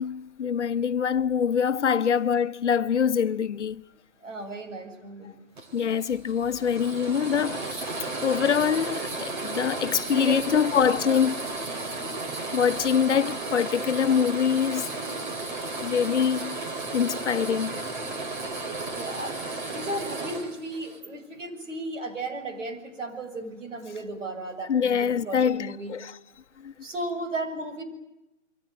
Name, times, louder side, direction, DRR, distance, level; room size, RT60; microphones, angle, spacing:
voice 1, 0.0-3.8 5.7-11.5 12.5-15.0 15.8-16.6 16.9-17.8 24.7-26.2 26.6-26.7, left 7 dB, 65° left, 1.0 m, -25 dB
voice 2, 4.2-5.3 10.1-10.6 11.1-11.2 18.9-25.9 26.8-27.8, right 2 dB, 75° right, 7.7 m, -35 dB
sound 1, 5.6-21.1, right 3 dB, 40° right, 3.6 m, -34 dB
28.0 x 23.5 x 7.8 m
hypercardioid pair, 175°, 38 cm